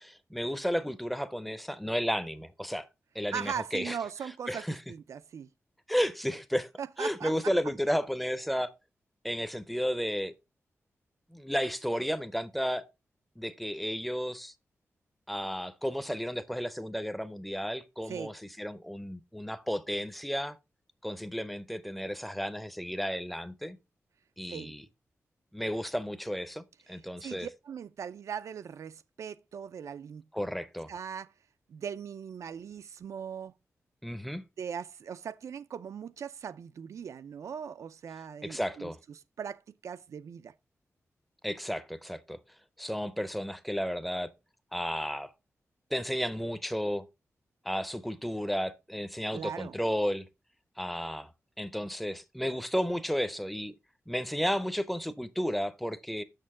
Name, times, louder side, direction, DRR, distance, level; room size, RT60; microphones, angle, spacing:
voice 1, 0.0-2.9 3.1-4.0 4.5-4.8 5.9-6.7 7.0-8.7 9.2-10.3 11.3-12.9 13.4-14.5 15.3-20.6 21.0-23.8 24.4-24.8 25.5-27.5 30.3-30.9 34.0-34.4 38.4-39.0 41.4-42.4 42.8-44.3 44.7-45.3 45.9-47.1 47.6-50.3 50.8-51.3 51.6-53.7 54.1-56.2, equal, ahead, 0.6 m, -33 dB
voice 2, 3.3-5.5 6.8-7.3 18.1-18.3 24.5-24.7 27.2-30.2 30.9-31.3 31.7-33.5 34.6-38.9 39.4-40.5 49.3-49.8, right 7 dB, 80° right, 0.4 m, -39 dB
6.6 x 6.4 x 3.6 m
wide cardioid pair, 155°, 5 cm